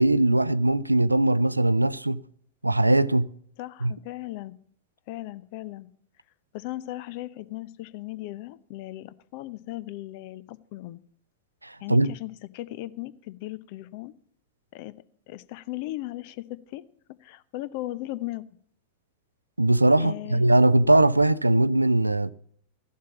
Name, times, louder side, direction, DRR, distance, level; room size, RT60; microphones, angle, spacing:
voice 1, 0.0-2.2 2.6-3.3 3.8-3.9 11.6-12.1 19.6-22.3, right 2 dB, 85° right, 0.4 m, -20 dB
voice 2, 3.6-4.5 5.1-5.9 6.5-11.0 11.8-14.1 14.7-16.8 17.1-18.5 20.0-20.4, left 16 dB, 45° left, 0.7 m, -37 dB
15.0 x 7.5 x 7.1 m
figure-of-eight pair, 90°, 0 cm